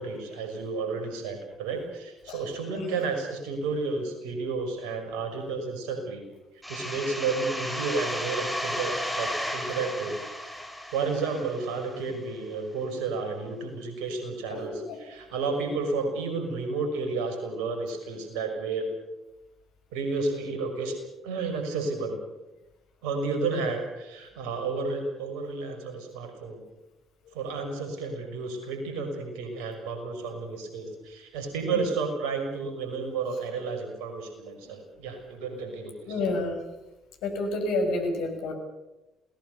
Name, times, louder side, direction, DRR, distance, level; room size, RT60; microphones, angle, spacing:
voice 1, 0.0-6.2 6.7-10.2 10.9-14.7 15.0-18.9 19.9-20.9 21.2-22.2 23.0-26.6 27.3-35.9, right 4 dB, 70° right, 6 dB, 5.9 m, -31 dB
sound 1, 6.6-12.1, equal, ahead, 6.7 m, -34 dB
voice 2, 14.5-15.0 27.2-27.4 31.7-31.8 34.6-34.7 36.1-36.6 37.2-38.5, left 2 dB, 70° left, 4 dB, 5.9 m, -30 dB
28.0 x 19.0 x 6.9 m, 1.0 s
hypercardioid pair, 50°, 0 cm